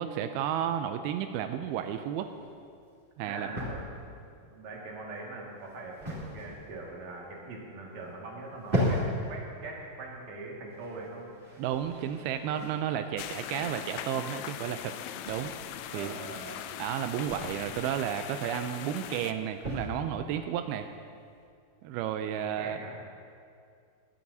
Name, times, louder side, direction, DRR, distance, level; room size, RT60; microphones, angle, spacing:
voice 1, 0.0-2.3 3.2-3.5 11.6-15.0 15.3-15.5 15.9-16.2 16.8-20.9 21.8-22.8, right 9 dB, 90° right, 7 dB, 2.1 m, -32 dB
sound 1, 1.7-21.5, equal, 15° right, 3.0 m, -39 dB
voice 2, 3.2-11.3 15.9-16.7 22.3-23.0, right 3 dB, 50° right, -3 dB, 2.8 m, -42 dB
sound 2, 13.2-19.3, left 11 dB, 90° left, 2.8 m, -40 dB
22.0 x 12.5 x 2.8 m, 2.3 s
omnidirectional pair, 4.9 m